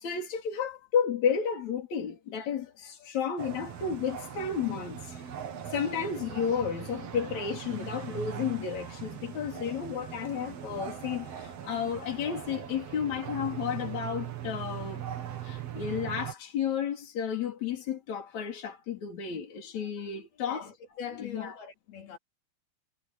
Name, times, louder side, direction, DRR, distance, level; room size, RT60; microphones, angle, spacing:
voice 1, 0.0-5.2 5.7-15.0 15.5-20.7 21.2-21.5, left 7 dB, 50° left, 5.0 m, -32 dB
sound 1, 3.4-16.3, right 9 dB, 50° right, 2.4 m, -40 dB
voice 2, 20.4-22.2, left 7 dB, 90° left, 6.0 m, -42 dB
omnidirectional pair, 4.2 m